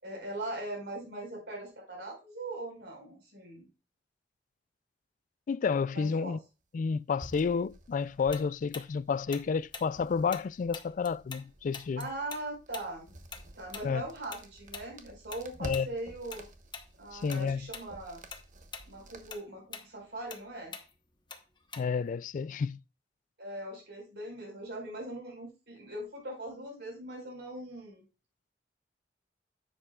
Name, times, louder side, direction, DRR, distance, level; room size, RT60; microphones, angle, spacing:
voice 1, 0.0-3.7 5.9-6.4 12.0-13.1 13.6-16.5 17.0-18.2 18.9-20.7 23.4-28.0, right 1 dB, 70° right, 4.7 m, -40 dB
voice 2, 5.5-6.4 6.7-12.1 13.8-14.0 15.6-15.9 17.1-17.6 21.8-22.8, left 5 dB, 45° left, 0.3 m, -30 dB
sound 1, 7.2-19.3, right 1 dB, 45° right, 1.1 m, -51 dB
Tick-tock, 8.3-11.5 11.7-16.4 16.7-16.9 17.3-17.9 18.2-22.1, left 5 dB, 25° left, 1.0 m, -45 dB
10.0 x 7.6 x 2.4 m
head